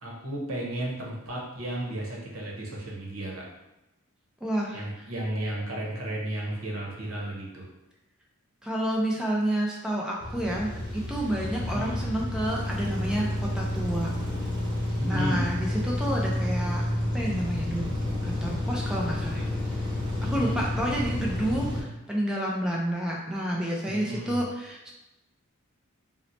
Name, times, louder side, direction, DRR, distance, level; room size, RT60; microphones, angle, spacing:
voice 1, 0.0-3.5 4.7-7.7 11.6-12.1 15.0-15.5 20.2-20.6 23.9-24.5, right 1 dB, 65° right, -3 dB, 0.9 m, -33 dB
voice 2, 4.4-5.1 8.6-14.1 15.0-16.8 17.1-17.9 18.2-19.5 20.2-24.9, right 1 dB, 5° right, -3 dB, 0.4 m, -30 dB
sound 1, 10.2-21.8, left 1 dB, 20° right, 1.3 m, -30 dB
2.8 x 2.1 x 3.9 m, 0.96 s
head